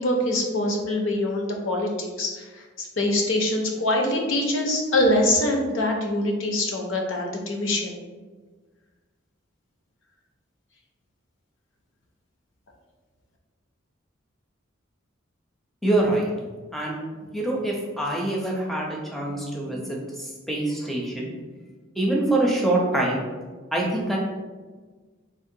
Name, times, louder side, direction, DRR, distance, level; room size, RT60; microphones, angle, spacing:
voice 1, 0.0-2.4 2.8-8.0, left 1 dB, 70° left, 2 dB, 0.5 m, -24 dB
voice 2, 15.8-16.3 16.7-17.0 17.3-21.3 22.0-23.2 23.7-24.2, right 1 dB, ahead, -2 dB, 0.4 m, -25 dB
3.6 x 2.1 x 2.6 m, 1.4 s
head